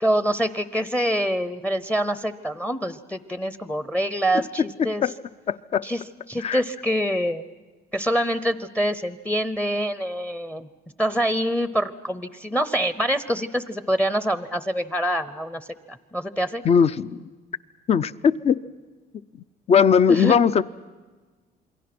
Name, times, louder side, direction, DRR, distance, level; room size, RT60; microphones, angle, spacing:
voice 1, 0.0-5.0 5.8-6.0 6.3-7.4 7.9-10.7 11.0-16.6 20.1-20.4, equal, 10° left, 14 dB, 0.7 m, -25 dB
voice 2, 4.8-5.1 5.5-5.8 6.4-6.6 16.6-17.3 17.9-18.6 19.3-20.6, left 7 dB, 40° left, 16 dB, 0.6 m, -20 dB
28.0 x 22.0 x 6.0 m, 1.3 s
cardioid pair, 110°, 17 cm